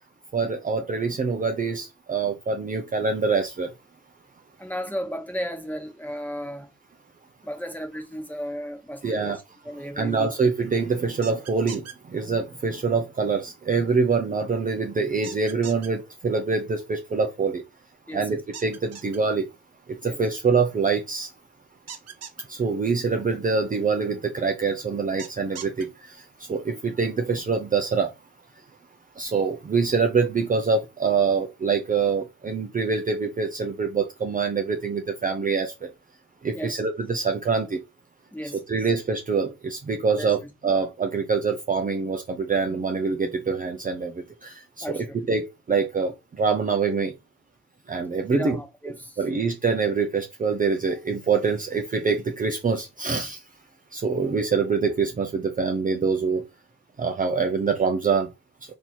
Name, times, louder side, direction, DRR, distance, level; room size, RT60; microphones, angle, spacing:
voice 1, 0.3-3.7 9.0-9.4 10.0-17.6 18.1-19.5 19.9-21.3 22.5-28.1 29.2-35.9 36.4-37.8 38.7-47.1 47.9-48.6 49.2-53.4 53.9-56.4 57.0-58.3, right 5 dB, 25° right, 0.6 m, -25 dB
voice 2, 4.6-6.7 7.4-10.3 18.1-18.4 20.0-20.2 36.5-36.8 38.3-38.9 40.2-40.5 44.8-45.2 48.3-49.2, equal, 5° left, 1.3 m, -35 dB
sound 1, 11.2-11.9 15.2-15.9 18.5-19.2 21.9-22.4 25.2-25.8, right 7 dB, 55° right, 1.0 m, -39 dB
3.9 x 2.8 x 4.5 m
cardioid pair, 90°, 30 cm